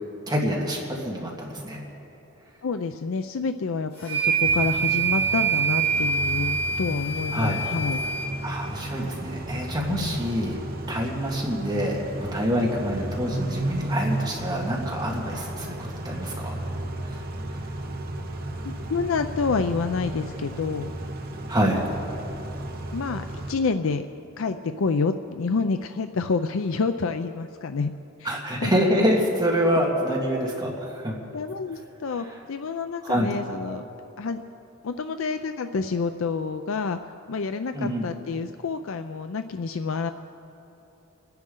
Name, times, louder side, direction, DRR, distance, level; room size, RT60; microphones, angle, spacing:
voice 1, 0.3-1.8 7.3-7.6 8.4-10.6 10.9-15.8 16.0-16.6 17.1-17.2 17.5-17.6 21.5-21.8 28.2-31.2 33.0-33.3 37.7-38.1, equal, 20° right, -3 dB, 1.8 m, -26 dB
voice 2, 2.6-8.0 9.9-10.2 18.6-20.9 22.9-24.1 24.4-27.9 28.2-28.7 31.3-33.8 34.2-34.4 34.8-37.0 37.3-40.1, left 4 dB, 65° left, 9 dB, 0.5 m, -28 dB
sound 1, 4.0-8.3, right 5 dB, 45° left, 3.5 m, -25 dB
Car / Idling / Accelerating revving vroom, 4.4-23.5, right 1 dB, 45° right, 1.0 m, -34 dB
29.5 x 10.5 x 3.8 m, 2.9 s
head